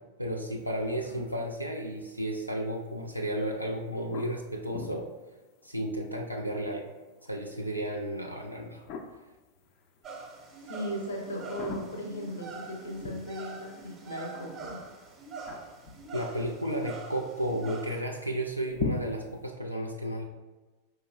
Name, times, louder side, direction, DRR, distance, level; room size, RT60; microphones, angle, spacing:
voice 1, 0.2-5.1 5.6-6.9 7.2-8.8 16.1-20.2, right 1 dB, 90° right, 0 dB, 0.3 m, -33 dB
sound 1, 0.6-19.5, left 4 dB, 45° left, 0.4 m, -45 dB
sound 2, 10.0-18.0, right 4 dB, 25° right, 0.6 m, -44 dB
voice 2, 10.7-14.8, equal, 75° left, 0 dB, 0.8 m, -37 dB
4.5 x 3.0 x 2.4 m, 1.2 s
figure-of-eight pair, 90°, 0 cm